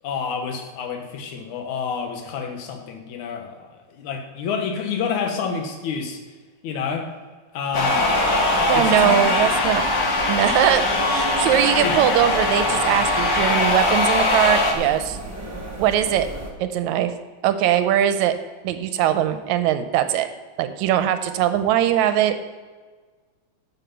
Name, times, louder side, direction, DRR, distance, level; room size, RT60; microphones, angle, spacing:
voice 1, 0.0-6.2 6.6-7.1 7.5-8.1 8.7-9.5 11.8-12.0, left 6 dB, 80° left, 4 dB, 2.6 m, -28 dB
sound 1, 7.7-14.7, left 2 dB, 55° left, 1.9 m, -21 dB
sound 2, 7.7-16.5, right 1 dB, 25° right, 0.3 m, -33 dB
voice 2, 8.7-9.8 10.3-15.2 15.8-16.3 16.6-17.1 17.4-18.3 18.6-20.3 20.6-22.4, right 11 dB, 80° right, 10 dB, 2.0 m, -21 dB
10.0 x 7.4 x 5.7 m, 1.4 s
omnidirectional pair, 3.3 m